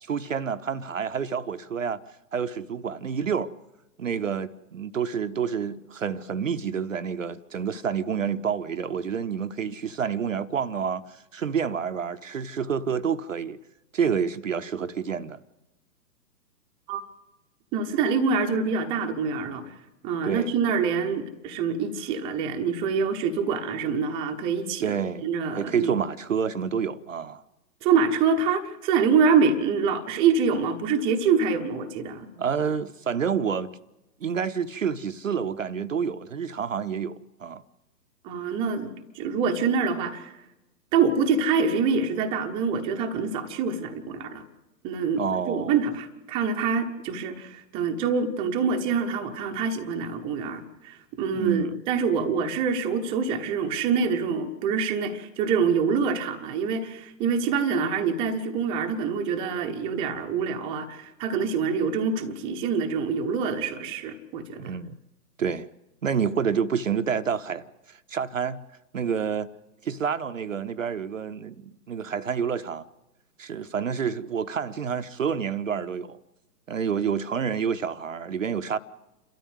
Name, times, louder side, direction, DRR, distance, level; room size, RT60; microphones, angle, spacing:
voice 1, 0.0-2.0 2.3-3.5 4.0-13.6 13.9-15.4 20.2-20.5 24.8-25.3 25.6-27.4 32.4-33.7 34.2-37.6 45.1-45.7 51.3-51.8 64.6-65.0 65.4-65.7 66.0-68.6 68.9-69.5 69.8-72.9 73.4-76.2 76.7-78.8, right 7 dB, 50° right, 0.8 m, -28 dB
voice 2, 17.7-19.7 20.0-25.0 25.2-25.9 27.8-32.3 38.2-40.3 40.9-44.4 44.8-45.2 45.5-64.8, right 5 dB, 10° right, 0.9 m, -25 dB
29.0 x 13.0 x 8.0 m
figure-of-eight pair, 125°, 50 cm